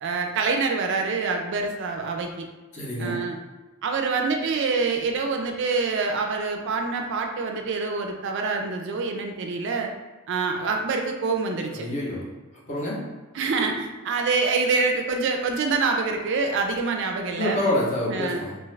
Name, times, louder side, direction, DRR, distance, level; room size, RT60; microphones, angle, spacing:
voice 1, 0.0-2.5 3.0-3.4 3.8-9.9 10.3-11.9 13.3-17.6 18.1-18.4, right 4 dB, 55° right, 3 dB, 0.3 m, -26 dB
voice 2, 2.7-3.2 11.8-12.3 12.7-13.1 17.3-18.6, left 1 dB, 35° left, -5 dB, 0.6 m, -27 dB
2.4 x 2.3 x 3.1 m, 1.2 s
head